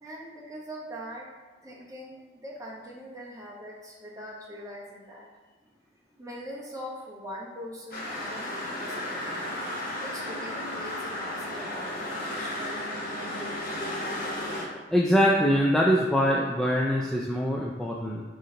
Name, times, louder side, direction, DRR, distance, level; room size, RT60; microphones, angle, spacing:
voice 1, 0.0-1.3 1.6-5.3 6.2-9.5 9.9-12.6, equal, 20° right, -5 dB, 1.0 m, -42 dB
sound 1, 7.9-14.7, left 1 dB, 50° left, 1.1 m, -34 dB
voice 2, 14.6-18.2, equal, 5° left, -3 dB, 0.3 m, -24 dB
5.0 x 3.8 x 2.8 m, 1.4 s
head